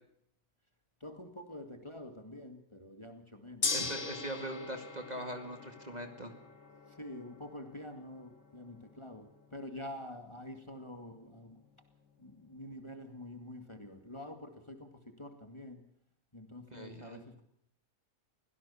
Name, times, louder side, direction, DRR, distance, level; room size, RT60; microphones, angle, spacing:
voice 1, 1.0-3.7 7.0-9.3 9.5-11.6 12.2-14.9 15.2-15.8 16.3-17.4, left 1 dB, 20° left, 6 dB, 2.2 m, -47 dB
Gong, 3.6-13.8, left 4 dB, 55° left, 3.1 m, -43 dB
voice 2, 3.7-6.4 16.7-17.2, right 1 dB, 25° right, 6 dB, 2.2 m, -41 dB
24.0 x 17.0 x 7.1 m, 0.71 s
omnidirectional pair, 1.6 m